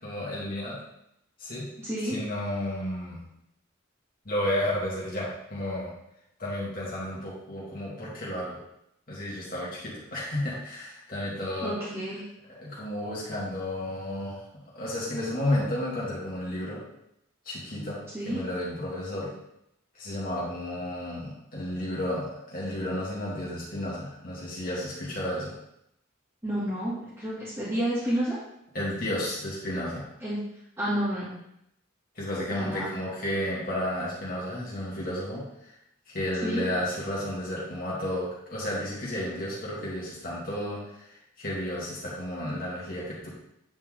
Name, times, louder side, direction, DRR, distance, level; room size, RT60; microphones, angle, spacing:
voice 1, 0.0-0.8 1.4-1.7 2.0-3.2 4.2-5.9 6.4-8.6 9.1-11.7 12.5-14.4 14.7-16.8 17.5-19.3 19.9-25.5 28.7-30.0 32.2-35.7 36.1-43.3, left 1 dB, 45° left, -6 dB, 2.4 m, -32 dB
voice 2, 1.8-2.2 11.6-12.2 18.1-18.4 26.4-28.4 30.2-30.4 30.8-31.3 32.5-32.9 36.4-36.6, right 1 dB, 15° right, -13 dB, 2.5 m, -30 dB
9.6 x 4.4 x 3.9 m, 0.79 s
head